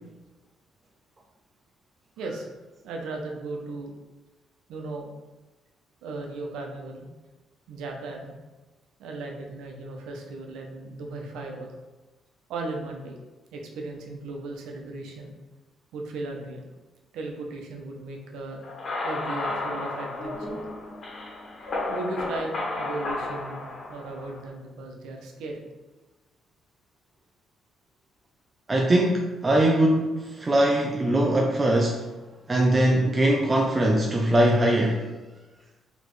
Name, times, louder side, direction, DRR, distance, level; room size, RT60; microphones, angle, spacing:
voice 1, 2.8-3.9 4.7-5.1 6.0-7.1 7.7-8.3 9.0-11.7 12.5-13.1 13.5-15.3 15.9-16.6 17.1-18.6 19.0-20.6 21.8-25.6, right 2 dB, 90° right, 1 dB, 0.6 m, -36 dB
sound 1, 18.6-24.4, left 2 dB, 50° left, 1.5 m, -33 dB
voice 2, 28.7-32.1 32.5-35.1, right 1 dB, 25° right, 0 dB, 0.4 m, -21 dB
4.1 x 3.1 x 3.1 m, 1.2 s
cardioid pair, 90°, 0 cm